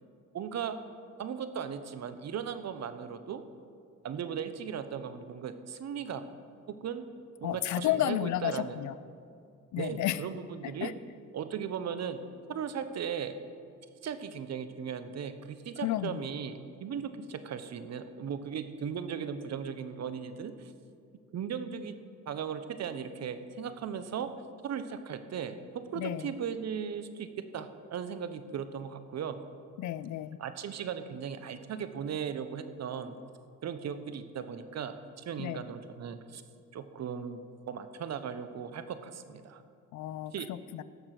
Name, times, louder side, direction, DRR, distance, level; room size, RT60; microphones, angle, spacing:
voice 1, 0.3-0.8 1.2-3.4 4.0-6.2 6.7-7.0 7.4-8.8 9.8-10.9 11.3-12.2 12.5-13.4 14.0-20.7 21.3-24.3 24.6-25.6 25.9-27.3 27.5-29.4 30.4-33.2 33.6-36.4 36.7-39.6 40.3-40.5, right 7 dB, 60° right, 10 dB, 1.0 m, -37 dB
voice 2, 7.4-8.9 9.7-10.2 10.6-10.9 15.8-16.3 26.0-26.3 29.8-30.4 35.4-35.6 39.9-40.8, left 13 dB, 75° left, 16 dB, 0.5 m, -32 dB
17.5 x 6.7 x 6.0 m, 2.3 s
cardioid pair, 90°, 30 cm